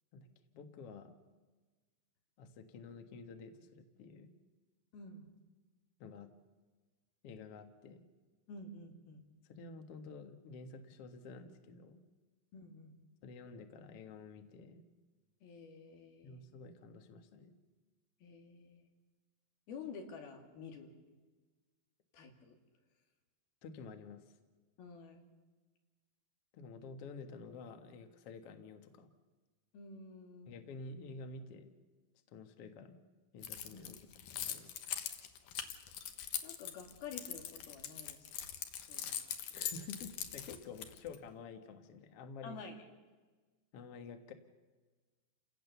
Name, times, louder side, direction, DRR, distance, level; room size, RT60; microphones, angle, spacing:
voice 1, 0.5-1.2 2.4-4.3 6.0-6.3 7.2-8.0 9.5-12.0 13.2-14.8 16.2-17.5 23.6-24.3 26.5-29.1 30.5-31.7 32.3-33.0 33.3-34.0 34.3-34.9 39.1-39.2 39.5-42.6 43.7-44.3, left 4 dB, 50° left, 6 dB, 2.0 m, -50 dB
voice 2, 4.9-5.3 8.5-9.2 12.5-13.0 15.4-16.4 18.2-18.9 19.7-21.0 22.1-22.6 24.8-25.2 29.7-30.7 33.7-34.0 36.4-38.5 38.9-39.1 42.4-42.9, left 4 dB, 85° left, 3 dB, 4.3 m, -50 dB
Keys jangling, 33.4-41.2, left 10 dB, 70° left, 2.7 m, -42 dB
29.5 x 17.5 x 6.9 m, 1.3 s
omnidirectional pair, 4.2 m